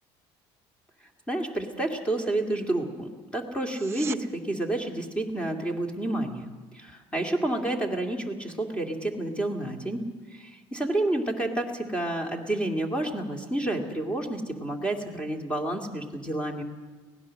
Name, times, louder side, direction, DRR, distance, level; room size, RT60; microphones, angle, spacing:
voice 1, 1.3-16.6, right 1 dB, 10° left, 3 dB, 2.3 m, -30 dB
sound 1, 3.6-4.2 15.6-15.7, right 6 dB, 25° right, 0.6 m, -40 dB
23.5 x 18.0 x 6.4 m, 1.3 s
cardioid pair, 145°, 11 cm